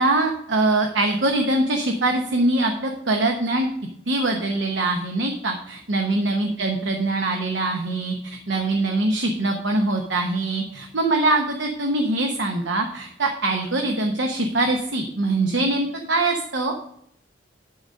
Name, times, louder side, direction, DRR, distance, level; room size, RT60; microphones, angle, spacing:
voice 1, 0.0-3.7 4.1-16.7, right 2 dB, 80° right, 3 dB, 0.9 m, -23 dB
12.0 x 4.0 x 5.2 m, 0.72 s
head